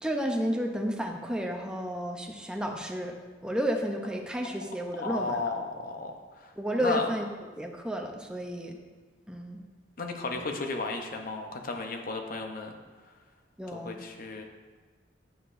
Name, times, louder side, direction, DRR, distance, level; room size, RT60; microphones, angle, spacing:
voice 1, 0.0-3.2 3.4-5.4 6.6-7.3 7.6-8.8 9.3-9.6 10.3-10.4 13.6-13.9, equal, 5° right, 2 dB, 0.6 m, -32 dB
voice 2, 5.0-7.1 10.0-12.7 13.7-14.4, left 3 dB, 50° left, 3 dB, 0.7 m, -34 dB
9.1 x 6.5 x 2.5 m, 1.3 s
head